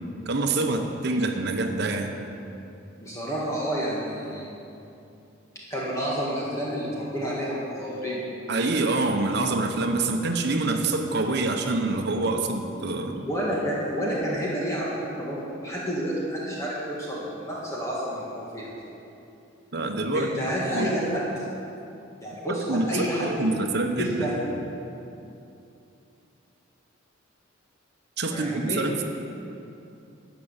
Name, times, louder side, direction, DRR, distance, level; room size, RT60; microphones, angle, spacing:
voice 1, 0.3-2.2 8.5-13.3 19.7-20.3 20.7-20.9 22.4-24.3 28.2-29.0, right 2 dB, 55° right, 4 dB, 1.0 m, -26 dB
voice 2, 3.0-4.5 5.7-8.2 13.3-18.9 20.1-21.4 22.2-23.3 24.0-24.3 28.3-28.8, equal, 15° left, -6 dB, 1.7 m, -29 dB
12.0 x 6.1 x 8.9 m, 2.8 s
head